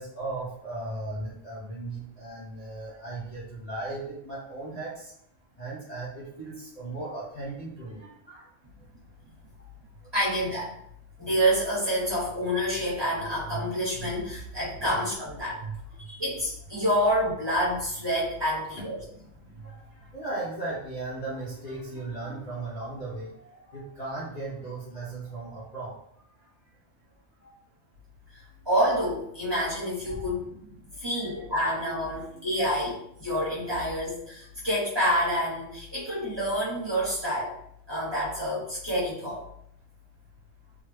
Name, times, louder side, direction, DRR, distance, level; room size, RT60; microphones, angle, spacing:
voice 1, 0.0-5.1 5.6-8.4 18.5-18.6 19.6-19.7 20.1-23.3 23.7-25.9 30.0-30.3 31.2-31.4, right 2 dB, 40° left, -8 dB, 0.7 m, -36 dB
voice 2, 10.1-10.7 11.2-15.7 16.0-19.0 28.3-37.5 37.9-39.4, equal, 20° right, -9 dB, 1.1 m, -28 dB
3.2 x 2.2 x 3.2 m, 0.73 s
omnidirectional pair, 1.3 m